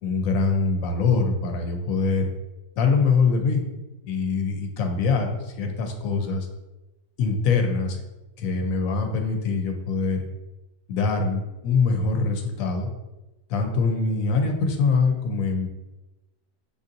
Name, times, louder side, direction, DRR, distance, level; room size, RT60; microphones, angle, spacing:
voice 1, 0.0-2.3 2.8-3.6 4.0-6.5 7.2-8.0 8.4-10.3 10.9-12.9 13.5-15.7, left 4 dB, 90° left, 4 dB, 1.1 m, -23 dB
6.7 x 2.7 x 2.5 m, 1.0 s
omnidirectional pair, 1.4 m